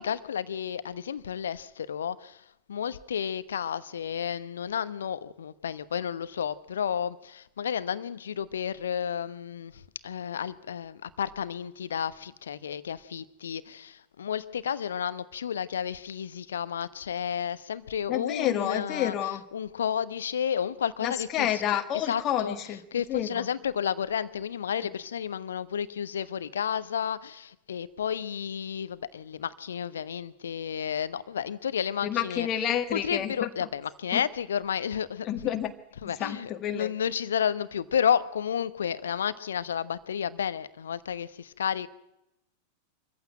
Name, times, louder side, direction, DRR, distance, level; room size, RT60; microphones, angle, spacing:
voice 1, 0.0-19.1 19.5-21.8 22.1-22.6 22.9-32.5 32.9-35.5 36.0-41.9, left 8 dB, 65° left, 1.0 m, -31 dB
voice 2, 18.1-19.4 21.0-22.8 23.1-23.5 24.8-24.9 32.0-33.5 34.1-34.2 35.2-35.7 36.0-36.9, left 10 dB, 30° left, 1.6 m, -29 dB
24.5 x 15.0 x 9.0 m
figure-of-eight pair, 90°, 0 cm